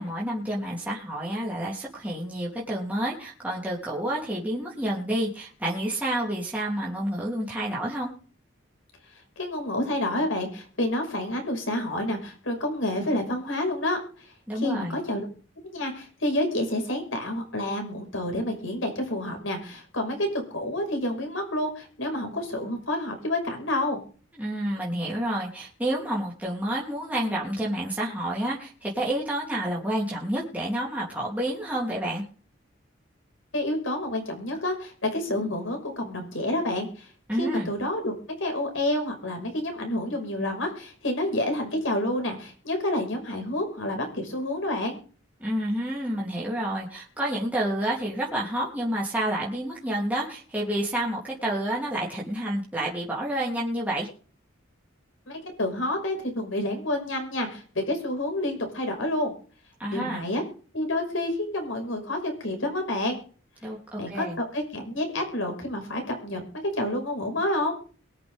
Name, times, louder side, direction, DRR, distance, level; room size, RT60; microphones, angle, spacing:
voice 1, 0.0-8.1 14.5-15.0 24.4-32.2 37.3-37.7 45.4-54.1 59.8-60.2 63.6-64.4, right 1 dB, 10° right, -5 dB, 3.4 m, -29 dB
voice 2, 9.4-14.0 14.5-15.3 15.7-24.0 33.5-37.1 37.4-38.1 38.4-45.0 55.3-59.3 59.9-60.4 60.7-63.2 64.0-67.7, left 1 dB, 85° left, 4 dB, 5.7 m, -29 dB
23.0 x 7.9 x 3.7 m, 0.40 s
head